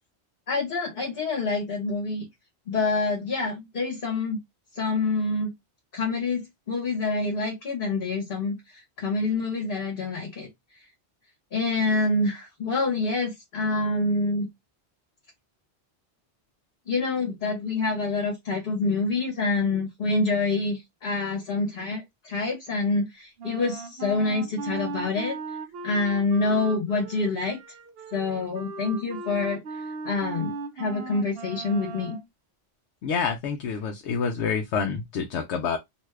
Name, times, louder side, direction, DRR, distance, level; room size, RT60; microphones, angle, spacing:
voice 1, 0.5-2.3 2.7-4.4 4.7-5.5 5.9-10.5 11.5-14.5 16.9-25.3 25.8-27.6 28.1-32.2, left 3 dB, 55° left, 1.1 m, -27 dB
Wind instrument woodwind instrument, 23.4-32.3, right 3 dB, 65° right, 0.7 m, -37 dB
voice 2, 33.0-35.8, left 6 dB, 75° left, 0.8 m, -27 dB
2.7 x 2.3 x 3.1 m
omnidirectional pair, 1.2 m